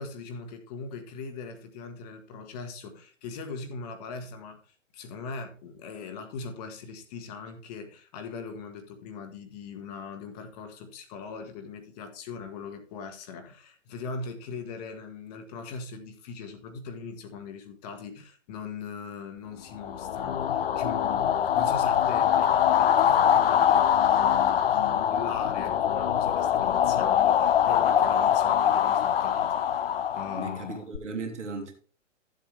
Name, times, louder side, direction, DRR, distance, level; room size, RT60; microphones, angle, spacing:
voice 1, 0.0-30.8, left 5 dB, 30° left, 6 dB, 1.4 m, -40 dB
sound 1, 19.8-31.0, left 9 dB, 50° left, 0.6 m, -23 dB
voice 2, 30.3-31.7, right 4 dB, 65° right, 2 dB, 2.6 m, -36 dB
12.5 x 7.6 x 3.4 m, 0.40 s
figure-of-eight pair, 120°, 38 cm